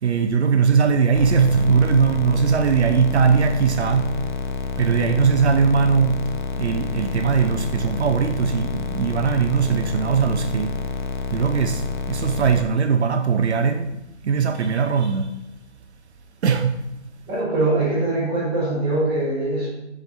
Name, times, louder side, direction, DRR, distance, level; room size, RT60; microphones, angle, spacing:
voice 1, 0.0-4.2 4.8-6.3 6.6-10.8 11.3-15.4 16.4-16.9, right 6 dB, 70° right, 0.6 m, -20 dB
sound 1, 1.1-12.6, left 5 dB, 45° left, 0.5 m, -29 dB
voice 2, 17.3-19.7, right 2 dB, 15° right, 1.3 m, -22 dB
6.8 x 3.5 x 4.3 m
hypercardioid pair, 155°, 35 cm